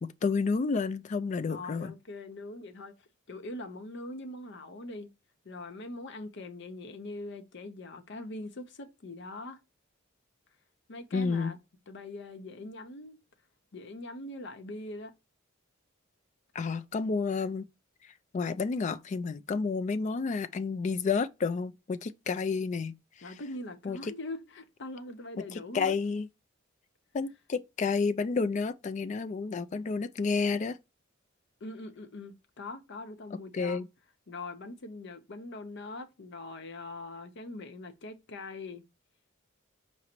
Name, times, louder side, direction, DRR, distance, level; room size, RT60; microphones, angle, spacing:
voice 1, 0.0-1.9 11.1-11.5 16.5-17.7 18.3-22.9 23.2-23.3 23.8-24.0 25.5-26.3 27.1-30.8 33.5-33.9, left 4 dB, 35° left, 0.3 m, -30 dB
voice 2, 1.5-2.9 3.3-5.1 5.4-9.6 10.9-11.6 11.9-13.2 13.7-15.1 23.2-26.0 31.6-33.8 34.3-38.8, left 2 dB, 60° left, 0.7 m, -42 dB
5.0 x 2.0 x 4.3 m
head